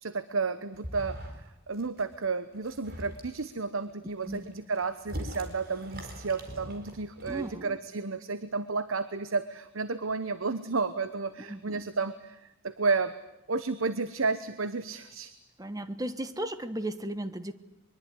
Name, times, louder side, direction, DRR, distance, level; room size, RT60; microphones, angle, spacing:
voice 1, 0.0-1.2 1.7-13.1 13.5-15.3, right 4 dB, 80° right, 13 dB, 1.0 m, -32 dB
sound 1, 0.7-1.5 1.7-2.2 2.5-3.5 4.1-7.6, equal, 45° right, 4.5 m, -42 dB
voice 2, 7.3-7.8 11.4-11.8 15.6-17.5, right 1 dB, 15° right, 12 dB, 1.4 m, -36 dB
23.0 x 22.5 x 9.8 m, 0.91 s
head